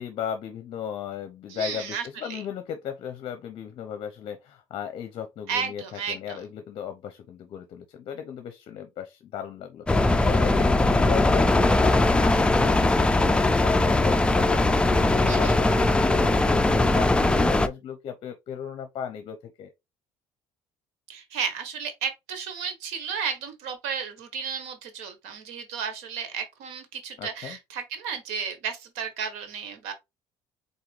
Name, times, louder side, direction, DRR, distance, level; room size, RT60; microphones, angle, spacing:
voice 1, 0.0-19.7 27.2-27.6, left 8 dB, 50° left, 0.6 m, -36 dB
voice 2, 1.5-2.4 5.5-6.4 15.3-15.5 21.1-29.9, right 6 dB, 90° right, 1.1 m, -33 dB
sound 1, 9.9-17.7, left 2 dB, 10° left, 0.4 m, -20 dB
4.1 x 3.5 x 3.2 m
cardioid pair, 110°, 11 cm